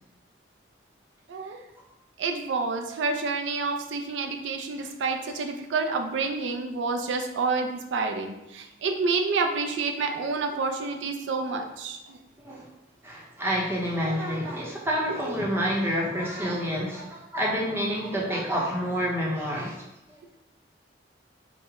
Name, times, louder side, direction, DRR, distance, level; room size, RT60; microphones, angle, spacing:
voice 1, 1.3-1.6 2.2-12.2 15.2-15.4, right 4 dB, 80° right, 4 dB, 0.4 m, -29 dB
voice 2, 13.0-19.8 20.1-20.2, equal, 15° right, -3 dB, 0.7 m, -28 dB
4.7 x 2.1 x 3.5 m, 0.93 s
head